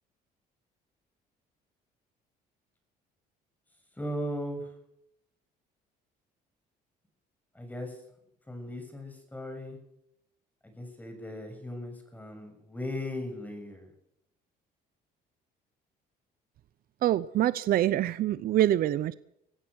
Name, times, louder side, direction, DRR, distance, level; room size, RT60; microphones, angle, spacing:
voice 1, 4.0-4.7 7.6-8.0 8.5-9.8 10.7-13.9, left 1 dB, 10° left, 5 dB, 6.9 m, -37 dB
voice 2, 17.0-19.1, right 12 dB, 60° right, 16 dB, 0.7 m, -25 dB
24.5 x 17.0 x 6.4 m, 0.77 s
cardioid pair, 110°, 17 cm